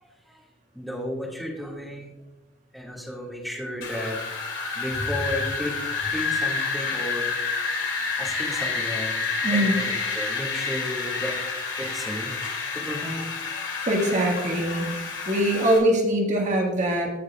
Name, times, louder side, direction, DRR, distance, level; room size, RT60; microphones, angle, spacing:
voice 1, 0.0-0.4 0.7-2.2 2.7-4.2 4.7-5.7 6.0-9.2 9.5-11.3 11.8-13.3, equal, ahead, -3 dB, 1.9 m, -34 dB
Wind, 3.8-15.8, left 4 dB, 70° left, 2.6 m, -29 dB
voice 2, 9.4-9.8 13.9-15.0 15.3-17.1, right 1 dB, 40° right, 1 dB, 1.6 m, -22 dB
16.0 x 6.5 x 2.4 m, 1.0 s
head